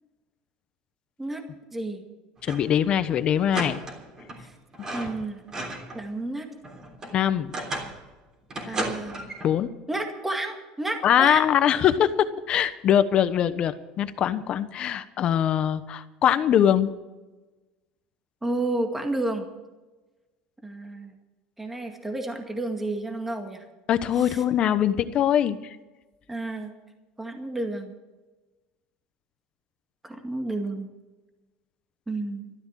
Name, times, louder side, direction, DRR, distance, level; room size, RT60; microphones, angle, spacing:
voice 1, 1.7-2.0 4.4-4.5 4.9-5.4 5.9-6.5 8.7-9.3 9.9-11.4 18.4-19.5 20.6-21.1 21.6-23.7 24.2-24.4 26.3-26.7 27.2-27.9 30.0-30.9 32.1-32.5, right 2 dB, 10° right, 4 dB, 2.0 m, -31 dB
voice 2, 2.4-3.8 7.1-7.5 8.6-8.8 9.4-9.7 11.0-16.9 23.9-25.8, left 10 dB, 40° left, 12 dB, 1.0 m, -22 dB
sound 1, 2.4-2.8 3.0-3.1 3.5-4.4 4.7-6.0 6.4-8.0 8.5-9.5, right 1 dB, 25° right, 3.4 m, -34 dB
13.5 x 12.5 x 7.5 m, 1.2 s
cardioid pair, 135°, 3 cm